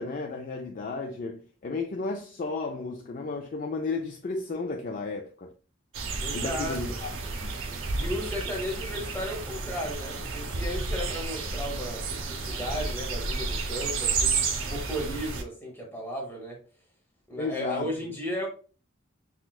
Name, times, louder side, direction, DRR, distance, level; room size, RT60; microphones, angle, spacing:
voice 1, 0.0-5.5 6.3-7.1 7.4-7.5 17.4-17.9, left 3 dB, 40° left, 0.4 m, -33 dB
sound 1, 5.9-15.4, right 4 dB, 75° right, 0.6 m, -31 dB
voice 2, 6.2-7.0 8.0-14.3 14.6-16.6 17.3-18.5, equal, 10° left, 0.9 m, -35 dB
6.0 x 2.3 x 2.3 m
head